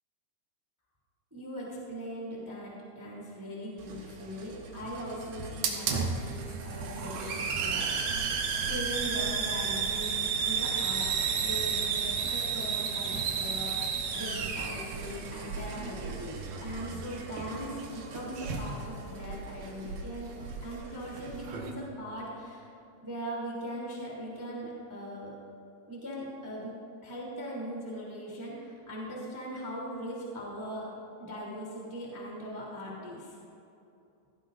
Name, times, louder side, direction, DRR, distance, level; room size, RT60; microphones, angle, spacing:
voice 1, 1.3-8.4 8.6-20.3 20.6-22.7 23.0-25.4 25.9-26.7 27.0-30.9 31.2-33.3, equal, 5° right, -4 dB, 2.1 m, -40 dB
Hiss, 3.8-21.7, right 6 dB, 65° right, 2.5 m, -33 dB
17.5 x 16.0 x 2.7 m, 2.7 s
omnidirectional pair, 5.1 m